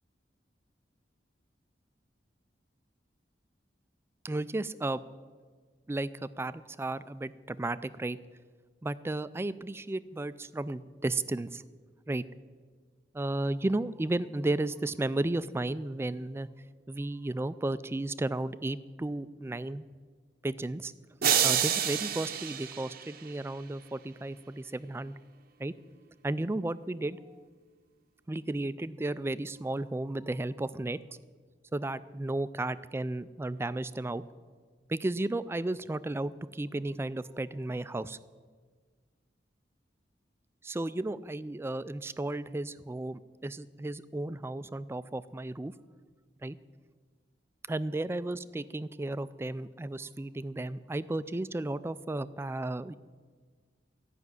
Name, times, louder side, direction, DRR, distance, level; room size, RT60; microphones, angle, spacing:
voice 1, 4.2-5.0 5.9-8.2 8.8-11.6 12.1-12.2 13.1-16.5 16.9-19.9 20.4-20.9 21.4-25.2 25.6-25.7 26.2-27.4 28.3-31.0 31.7-34.2 34.9-38.2 40.6-45.7 46.4-46.6 47.7-52.9, right 2 dB, 15° right, 16 dB, 0.3 m, -34 dB
sound 1, 21.2-23.5, right 9 dB, 55° right, 0.7 m, -28 dB
13.5 x 6.0 x 9.4 m, 1.5 s
head